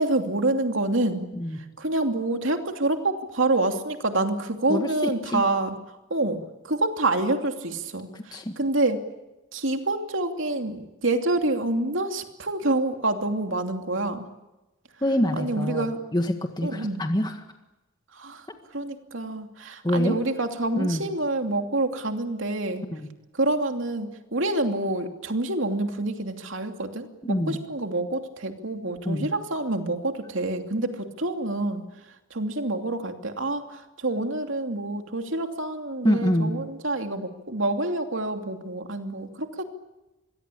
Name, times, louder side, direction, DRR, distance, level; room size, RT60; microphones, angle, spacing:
voice 1, 0.0-1.3 1.8-5.8 6.1-9.0 9.5-14.3 15.4-16.0 16.6-17.0 18.1-18.4 18.7-22.8 23.3-31.8 32.3-39.6, right 2 dB, 65° right, 5 dB, 2.8 m, -27 dB
voice 2, 4.7-5.4 8.1-8.5 15.0-15.9 16.1-17.3 19.8-20.2 20.7-21.0 22.9-23.1 27.2-27.6 29.0-29.3 36.0-36.5, equal, 20° left, 5 dB, 1.8 m, -25 dB
26.5 x 22.5 x 8.6 m, 1.0 s
head